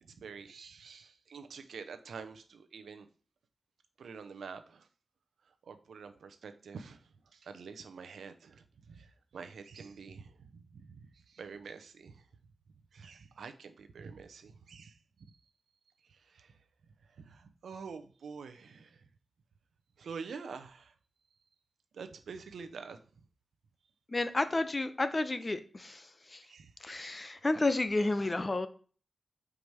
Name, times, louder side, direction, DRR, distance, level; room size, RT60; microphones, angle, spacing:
voice 1, 0.0-3.1 4.0-4.9 5.6-12.3 12.9-15.3 16.1-16.6 17.1-19.1 20.0-20.9 21.9-23.0 26.5-26.7, right 5 dB, 85° right, 9 dB, 0.6 m, -47 dB
voice 2, 24.1-26.0 26.3-26.4 26.8-28.7, left 2 dB, 40° left, 10 dB, 0.8 m, -31 dB
4.9 x 4.7 x 5.5 m, 0.42 s
cardioid pair, 45°, 0 cm